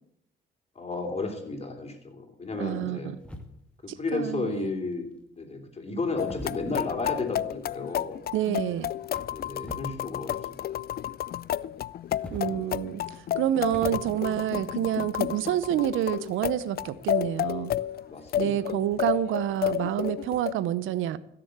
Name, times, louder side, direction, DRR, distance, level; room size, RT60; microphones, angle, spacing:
voice 1, 0.7-3.1 3.8-5.1 5.4-8.2 9.3-10.7 18.1-18.6, left 3 dB, 30° left, 3 dB, 3.4 m, -33 dB
voice 2, 2.6-3.2 3.9-4.7 8.3-8.9 12.3-17.7 18.4-21.2, right 12 dB, 85° right, 17 dB, 0.7 m, -28 dB
sound 1, 3.2-3.9 4.9-5.3 6.0-7.1 8.7-10.0 10.2-11.1 11.9-13.9, equal, 5° left, 2.1 m, -45 dB
sound 2, 6.2-20.5, left 11 dB, 50° left, 0.4 m, -31 dB
16.0 x 7.0 x 8.0 m, 0.75 s
cardioid pair, 90°, 20 cm